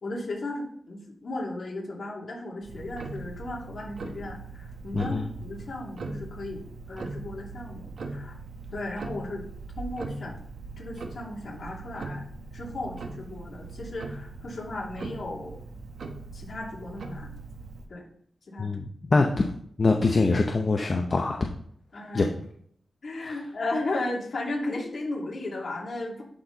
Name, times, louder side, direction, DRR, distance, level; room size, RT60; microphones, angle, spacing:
voice 1, 0.0-5.1 5.4-6.6 6.9-8.4 8.7-9.4 9.8-10.3 10.8-12.2 12.5-15.6 16.3-17.3 17.9-18.0 18.5-18.7 21.9-22.3 23.0-26.2, left 2 dB, 55° left, -3 dB, 2.5 m, -35 dB
Tick-tock, 2.6-17.9, right 3 dB, 70° right, 1.0 m, -40 dB
voice 2, 4.9-5.3 18.6-19.5 19.8-21.4 22.1-22.3 23.2-23.3, left 3 dB, 35° left, 2 dB, 0.7 m, -24 dB
11.5 x 4.3 x 3.9 m, 0.63 s
wide cardioid pair, 150°, 0 cm